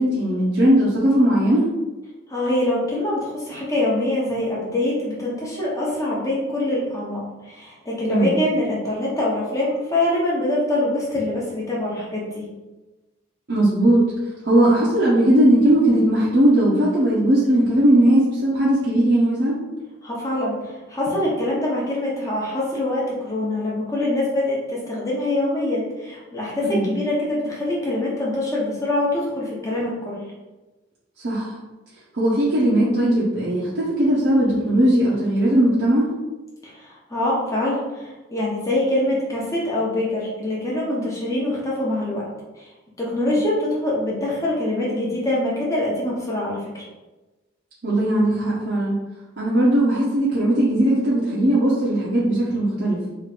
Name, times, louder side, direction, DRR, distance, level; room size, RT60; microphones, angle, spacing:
voice 1, 0.0-1.7 8.1-8.3 13.5-14.0 14.4-19.6 26.6-26.9 31.2-31.5 32.1-36.1 43.3-43.4 47.8-48.9 49.4-53.0, right 1 dB, 55° right, -8 dB, 0.7 m, -18 dB
voice 2, 2.3-12.5 20.0-30.2 36.6-42.2 42.6-42.7 43.0-46.8, left 1 dB, 15° left, -5 dB, 0.8 m, -24 dB
3.1 x 2.5 x 4.1 m, 1.1 s
head